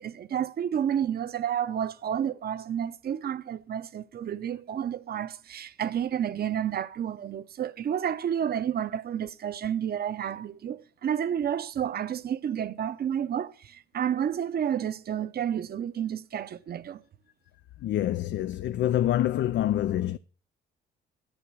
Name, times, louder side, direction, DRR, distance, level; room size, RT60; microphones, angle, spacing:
voice 1, 0.0-17.0, right 9 dB, 50° right, 0.7 m, -30 dB
voice 2, 17.8-20.2, left 12 dB, 65° left, 0.4 m, -26 dB
11.5 x 7.0 x 6.2 m
cardioid pair, 90°, 20 cm